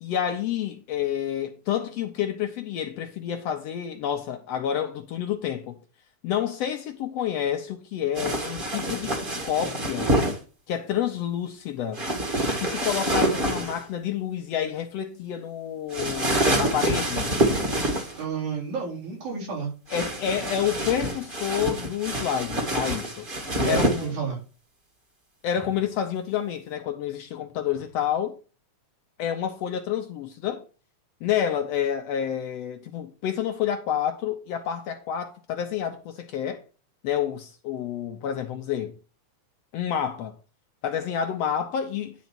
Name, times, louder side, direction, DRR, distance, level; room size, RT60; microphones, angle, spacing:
voice 1, 0.0-5.8 6.2-9.1 9.4-10.1 10.7-12.0 12.6-17.4 19.9-23.3 23.6-24.1 25.4-28.4 29.2-30.6 31.2-36.6 37.0-39.0 39.7-40.4 40.8-42.1, left 9 dB, 75° left, 1.6 m, -29 dB
sound 1, 8.2-10.4 11.9-13.8 15.9-18.2 19.9-24.1, right 1 dB, 25° right, 1.3 m, -26 dB
voice 2, 18.2-19.7 23.6-24.4, right 6 dB, 80° right, 5.3 m, -31 dB
10.5 x 4.1 x 5.9 m
omnidirectional pair, 3.4 m